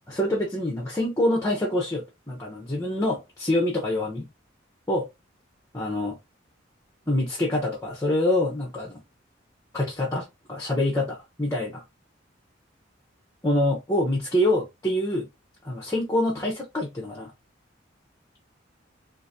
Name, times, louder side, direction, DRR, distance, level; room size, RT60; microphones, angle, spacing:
voice 1, 0.1-4.3 4.9-5.1 5.7-6.2 7.1-9.0 9.7-11.8 13.4-15.3 15.6-17.3, left 1 dB, 15° left, 0.8 m, -26 dB
3.9 x 2.6 x 2.7 m
head